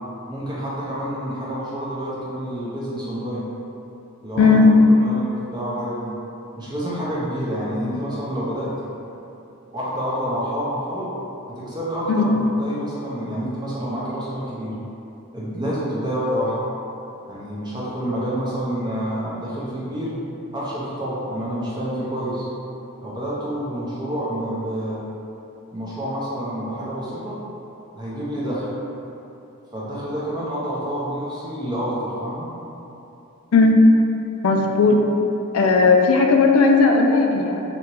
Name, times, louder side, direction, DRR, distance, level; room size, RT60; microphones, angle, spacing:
voice 1, 0.3-3.4 4.2-6.2 6.6-8.9 9.7-11.1 11.5-14.7 15.3-16.6 17.3-20.2 20.5-22.5 23.0-25.0 25.7-27.4 27.9-28.7 29.7-32.5, equal, 20° right, -8 dB, 0.6 m, -28 dB
voice 2, 4.4-4.7 12.2-12.3 33.5-33.8 34.4-35.0 35.5-37.6, left 4 dB, 75° left, 2 dB, 0.4 m, -16 dB
3.5 x 2.9 x 2.9 m, 2.8 s
head